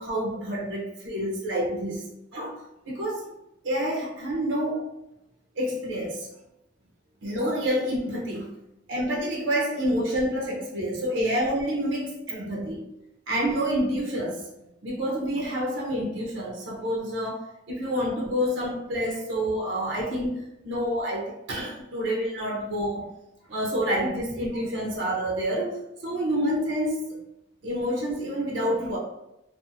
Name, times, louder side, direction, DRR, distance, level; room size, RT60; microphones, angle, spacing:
voice 1, 0.0-2.6 2.9-3.3 3.6-4.9 5.6-6.3 7.2-8.5 8.9-12.9 13.3-14.5 14.8-23.1 23.5-27.2 27.6-29.0, equal, 75° right, -2 dB, 0.6 m, -28 dB
2.5 x 2.4 x 2.6 m, 0.87 s
head